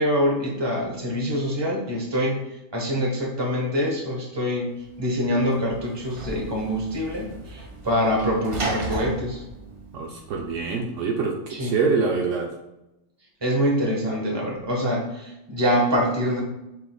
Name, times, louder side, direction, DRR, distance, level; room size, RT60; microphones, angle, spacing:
voice 1, 0.0-2.4 2.7-9.4 11.5-11.8 13.4-16.4, equal, 20° right, -1 dB, 1.0 m, -25 dB
Sliding door / Slam, 4.8-10.7, right 1 dB, 40° right, 0.5 m, -35 dB
voice 2, 9.9-12.5, right 4 dB, 70° right, 1 dB, 0.9 m, -25 dB
5.8 x 3.8 x 2.2 m, 0.92 s
omnidirectional pair, 1.4 m